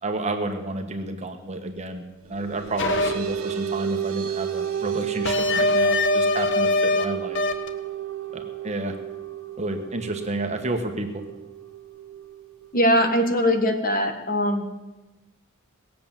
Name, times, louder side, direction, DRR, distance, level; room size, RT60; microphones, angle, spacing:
voice 1, 0.0-7.4 8.3-9.0 9.6-11.2, right 2 dB, 35° right, 5 dB, 1.3 m, -30 dB
sound 1, 2.3-13.3, right 10 dB, 80° right, 1.2 m, -32 dB
sound 2, 2.8-3.1 5.3-7.0 7.4-7.7, left 3 dB, 60° left, 1.2 m, -22 dB
voice 2, 12.7-14.6, equal, 45° left, 6 dB, 1.5 m, -21 dB
18.5 x 7.7 x 7.4 m, 1.1 s
head